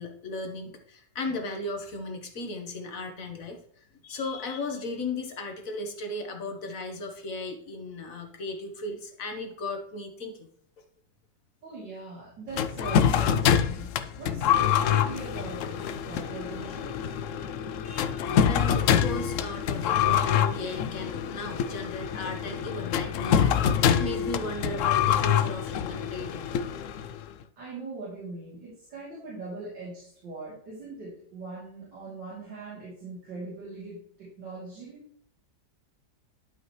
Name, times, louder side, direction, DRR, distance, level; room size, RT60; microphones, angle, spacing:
voice 1, 0.0-10.5 17.8-26.4, left 2 dB, 55° left, 4 dB, 1.5 m, -36 dB
voice 2, 11.6-13.9 14.2-15.8 16.0-16.9 27.6-35.0, right 3 dB, 85° right, -8 dB, 3.6 m, -41 dB
sound 1, 12.5-27.2, left 8 dB, 85° left, 0.7 m, -26 dB
12.0 x 5.4 x 3.1 m, 0.65 s
omnidirectional pair, 1.9 m